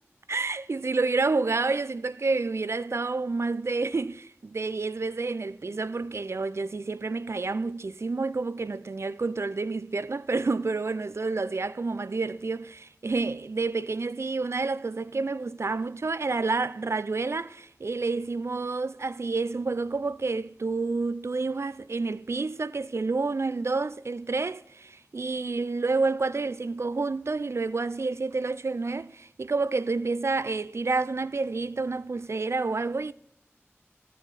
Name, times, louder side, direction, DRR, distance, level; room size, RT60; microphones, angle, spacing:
voice 1, 0.3-33.1, right 3 dB, 70° right, 0.3 m, -29 dB
13.5 x 4.8 x 4.1 m
wide cardioid pair, 50°, 5 cm